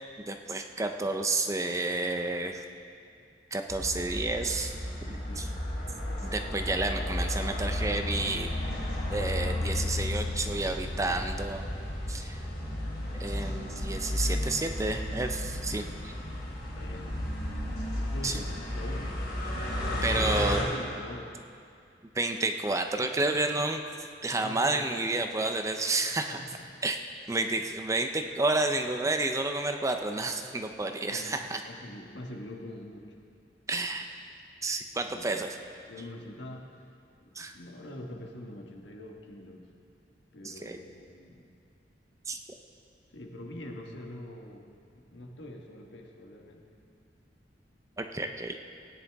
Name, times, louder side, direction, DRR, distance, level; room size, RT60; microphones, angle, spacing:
voice 1, 0.2-2.6 3.5-4.7 5.1-5.5 6.2-8.5 9.1-11.6 12.1-12.4 13.1-16.1 18.2-18.4 20.0-20.7 22.1-23.8 24.2-26.4 26.8-27.0 27.3-31.6 33.7-34.1 34.6-35.6 37.4-37.5 40.4-40.8 42.3-42.4 48.0-48.6, right 2 dB, 15° right, 5 dB, 0.5 m, -30 dB
Carpark ambience, 3.7-20.6, left 1 dB, 65° left, 3.3 m, -33 dB
voice 2, 5.2-5.5 11.0-11.2 15.7-15.8 16.7-17.2 17.9-19.2 19.8-21.4 24.3-25.3 26.4-26.7 31.1-33.1 35.0-35.5 35.9-36.8 37.2-39.7 40.3-41.5 43.1-46.7, left 1 dB, 80° left, 1 dB, 1.4 m, -44 dB
17.5 x 9.8 x 3.5 m, 2.4 s
head